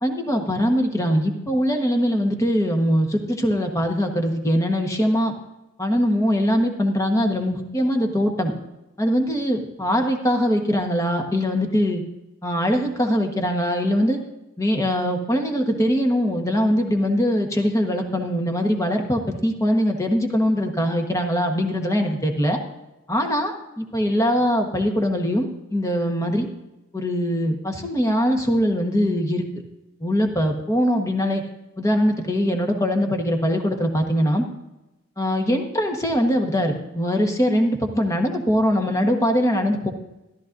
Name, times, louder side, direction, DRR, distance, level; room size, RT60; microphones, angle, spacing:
voice 1, 0.0-5.3 5.8-8.5 9.0-12.0 12.4-14.2 14.6-22.6 23.1-26.5 26.9-29.4 30.0-31.4 31.8-34.5 35.2-39.9, equal, 15° left, 3 dB, 1.2 m, -22 dB
14.0 x 13.0 x 2.6 m, 0.99 s
head